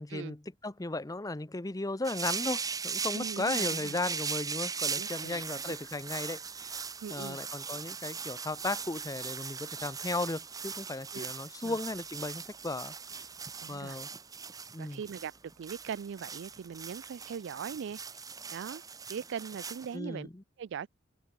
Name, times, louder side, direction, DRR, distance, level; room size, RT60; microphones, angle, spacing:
voice 1, 0.0-6.8 7.1-12.9 13.7-14.1 14.7-15.0 19.9-20.4, left 2 dB, 15° left, 0.8 m, -36 dB
sound 1, 2.0-19.9, right 5 dB, 20° right, 0.8 m, -39 dB
voice 2, 3.1-4.0 5.0-5.6 7.0-7.4 11.1-11.3 11.6-11.8 13.6-14.0 14.8-15.3 15.6-18.0 18.5-18.8 19.1-20.3 20.6-20.9, right 7 dB, 60° right, 0.3 m, -40 dB
sound 2, 5.2-18.5, equal, 70° left, 6.3 m, -72 dB
head